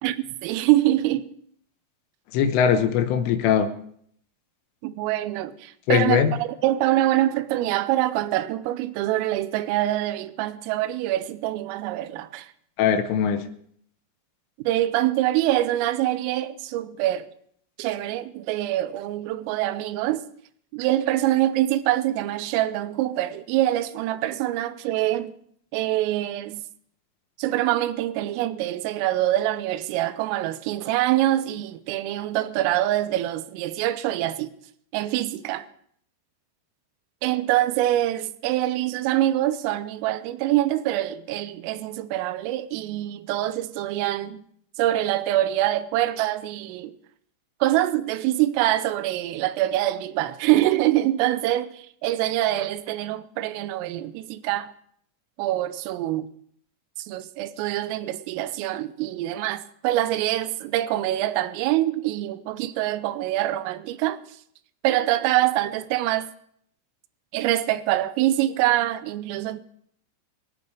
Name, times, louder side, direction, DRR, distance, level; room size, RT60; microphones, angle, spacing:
voice 1, 0.0-1.3 4.8-12.5 14.6-17.3 17.8-20.2 20.7-25.4 25.7-26.6 27.4-34.5 34.9-35.7 37.2-44.4 44.8-47.0 47.6-54.7 55.4-56.3 57.0-64.2 64.8-66.3 67.3-69.6, right 14 dB, 85° right, 3.4 m, -25 dB
voice 2, 2.3-3.7 5.9-6.3 12.8-13.4, left 8 dB, 80° left, 3.6 m, -20 dB
24.0 x 8.8 x 4.9 m
omnidirectional pair, 5.9 m